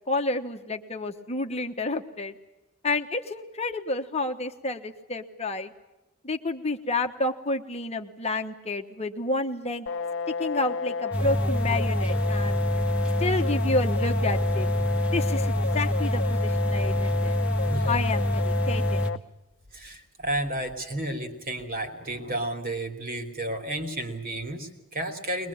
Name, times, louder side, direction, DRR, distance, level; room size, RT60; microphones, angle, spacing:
voice 1, 0.1-2.4 2.8-5.7 6.2-9.9 10.4-12.6 13.2-14.7 15.1-17.3 17.9-19.1, left 2 dB, 30° left, 5 dB, 1.2 m, -30 dB
sound 1, 9.9-19.2, left 5 dB, 55° left, 0.8 m, -31 dB
sound 2, 11.1-19.1, equal, 5° right, 1.6 m, -26 dB
voice 2, 17.7-18.0 19.7-25.5, right 1 dB, 40° right, 5 dB, 3.2 m, -32 dB
22.0 x 22.0 x 8.7 m, 0.98 s
head